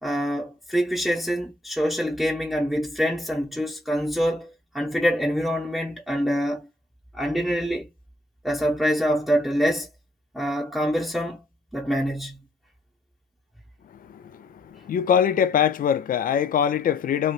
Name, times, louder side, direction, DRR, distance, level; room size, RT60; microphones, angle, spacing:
voice 1, 0.0-6.7 7.1-7.9 8.4-9.9 10.3-11.4 11.7-12.4, equal, ahead, 0.9 m, -25 dB
voice 2, 14.7-17.3, left 8 dB, 45° left, 0.5 m, -22 dB
3.2 x 2.6 x 2.4 m
cardioid pair, 85°, 20 cm